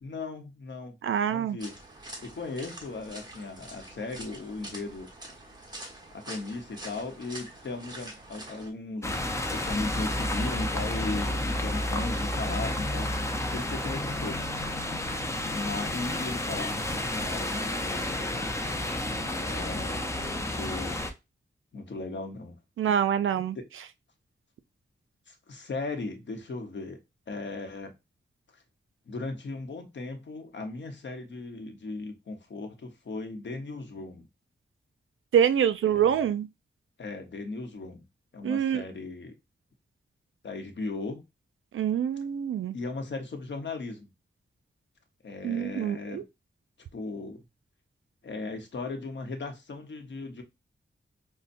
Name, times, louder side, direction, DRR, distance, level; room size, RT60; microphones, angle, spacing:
voice 1, 0.0-1.0 1.2-1.7 2.2-5.1 6.1-14.4 15.4-18.5 19.0-21.0 21.7-22.5 23.5-23.6 25.3-27.0 27.3-27.9 29.1-34.3 35.8-36.3 37.0-38.0 38.3-39.3 40.4-41.2 42.7-44.1 45.2-46.2 46.9-47.4 48.2-50.4, left 3 dB, 65° left, 0.9 m, -37 dB
voice 2, 1.0-1.6 22.8-23.6 35.3-36.5 38.4-38.8 41.7-42.8 45.4-46.2, right 9 dB, 85° right, 0.4 m, -25 dB
sound 1, 1.6-8.7, right 1 dB, 20° right, 1.1 m, -45 dB
sound 2, 9.0-21.1, left 1 dB, 15° left, 0.5 m, -31 dB
5.3 x 2.1 x 2.5 m
wide cardioid pair, 110°, 20 cm